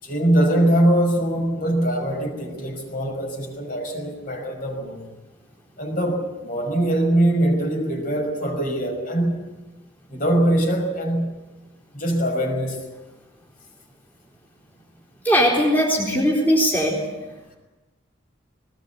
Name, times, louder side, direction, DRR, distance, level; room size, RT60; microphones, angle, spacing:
voice 1, 0.0-5.0 5.8-9.5 10.1-11.4 11.9-12.8, right 1 dB, 45° left, 2 dB, 5.7 m, -22 dB
voice 2, 15.2-17.0, equal, 10° left, -3 dB, 4.1 m, -19 dB
21.0 x 20.0 x 8.4 m, 1.1 s
head